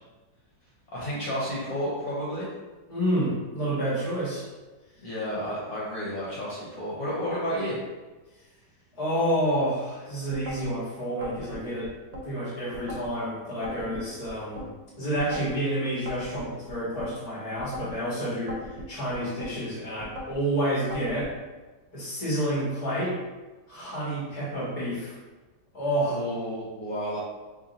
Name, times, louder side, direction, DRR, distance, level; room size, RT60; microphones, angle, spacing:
voice 1, 0.9-2.5 5.0-7.8 26.1-27.2, equal, 60° left, -7 dB, 1.2 m, -31 dB
voice 2, 2.9-4.5 9.0-11.9 12.2-14.6 15.0-21.3 21.9-23.2 23.7-25.2 25.7-26.2, right 1 dB, 25° left, -8 dB, 1.2 m, -29 dB
sound 1, 10.3-10.7 11.2-12.3 12.7-13.1 13.6-14.7 15.1-15.6 16.1-17.1 17.6-18.0 18.5-19.5 20.0-20.4 20.9-21.3, left 1 dB, 60° right, 1.1 m, -39 dB
3.0 x 2.6 x 3.9 m, 1.2 s
omnidirectional pair, 1.8 m